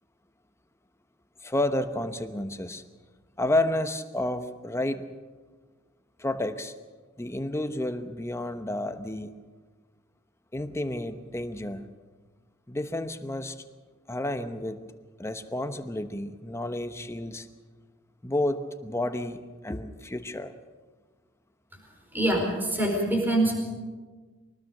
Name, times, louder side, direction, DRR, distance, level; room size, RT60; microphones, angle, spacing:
voice 1, 1.4-2.8 3.4-5.1 6.2-6.7 7.2-9.3 10.5-11.9 12.7-13.6 14.1-14.8 15.2-17.5 18.2-20.5, left 1 dB, 15° left, 8 dB, 1.0 m, -30 dB
voice 2, 22.1-23.6, right 1 dB, 10° right, 1 dB, 4.8 m, -24 dB
24.0 x 19.0 x 6.6 m, 1.4 s
head